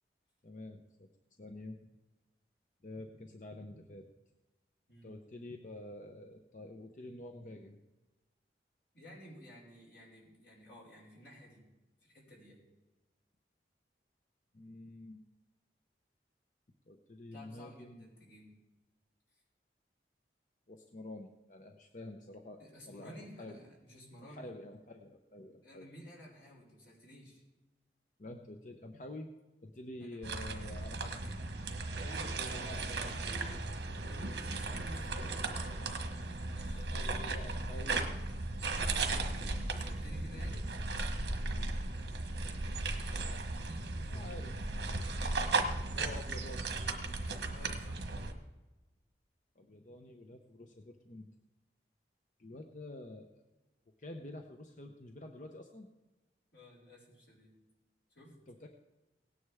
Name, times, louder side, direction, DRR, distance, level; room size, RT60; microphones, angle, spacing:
voice 1, 0.4-1.1 1.4-1.8 2.8-4.1 5.0-7.8 14.5-15.2 16.9-18.0 20.7-22.6 22.9-23.6 24.3-25.9 28.2-29.3 29.6-31.2 32.4-33.2 36.9-38.1 41.4-41.7 43.1-43.4 44.1-44.5 45.9-46.8 49.6-51.3 52.4-53.3 54.0-55.9 58.5-58.7, left 1 dB, 45° left, 4 dB, 0.7 m, -48 dB
voice 2, 8.9-11.6 12.0-12.6 17.3-18.5 19.3-19.4 22.6-24.5 25.6-27.4 30.0-30.2 30.9-31.4 32.0-33.6 34.0-37.4 39.6-40.7 42.3-44.4 45.2-45.9 47.1-48.0 56.5-57.5 58.1-58.3, equal, 85° left, -5 dB, 5.1 m, -54 dB
sound 1, 30.2-48.3, right 3 dB, 70° right, 1.3 m, -36 dB
18.0 x 9.7 x 3.5 m, 1.1 s
head